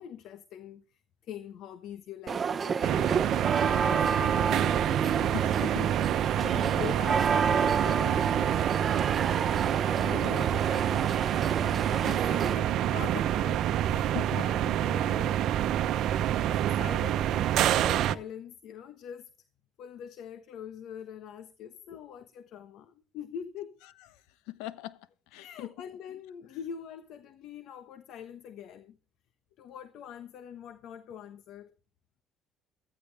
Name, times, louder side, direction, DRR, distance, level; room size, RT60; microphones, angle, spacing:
voice 1, 0.0-4.8 5.6-6.0 6.5-8.3 8.9-9.1 9.6-15.8 16.5-19.3 19.8-23.7 25.3-29.0 29.6-31.7, left 9 dB, 70° left, 1.2 m, -44 dB
sound 1, 2.3-12.5, right 6 dB, 35° right, 0.8 m, -30 dB
sound 2, 2.8-18.2, right 11 dB, 70° right, 0.8 m, -27 dB
voice 2, 5.2-6.1 6.4-6.9 11.5-11.8 13.9-14.4 24.5-25.7, left 15 dB, 90° left, 0.9 m, -41 dB
15.0 x 15.0 x 3.5 m
cardioid pair, 95°, 0 cm